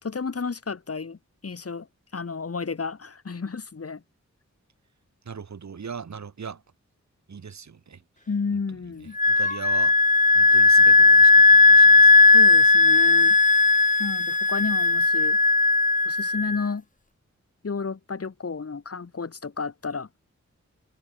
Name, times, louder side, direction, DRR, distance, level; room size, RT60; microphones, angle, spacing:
voice 1, 0.0-1.9 2.1-4.0 8.3-9.2 12.3-13.3 14.0-15.4 16.0-16.8 17.6-20.1, left 4 dB, 55° left, 2.9 m, -32 dB
voice 2, 5.3-6.6 7.3-8.0 9.3-9.9 10.3-12.1, right 6 dB, 70° right, 2.0 m, -39 dB
Wind instrument woodwind instrument, 9.2-16.6, left 3 dB, 25° left, 1.2 m, -16 dB
wide cardioid pair, 100°, 29 cm